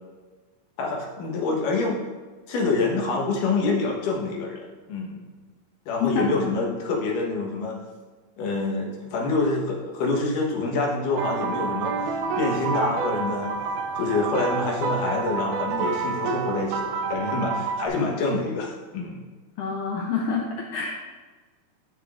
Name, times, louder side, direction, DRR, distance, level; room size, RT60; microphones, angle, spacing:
voice 1, 0.8-2.0 2.5-5.2 5.9-7.8 8.4-11.9 12.4-13.6 14.0-19.2, left 3 dB, 65° left, -1 dB, 2.6 m, -26 dB
sound 1, 11.2-17.9, right 5 dB, 85° right, 2.5 m, -28 dB
voice 2, 19.6-21.0, left 5 dB, 85° left, -1 dB, 1.8 m, -27 dB
12.5 x 6.5 x 2.6 m, 1.4 s
omnidirectional pair, 4.5 m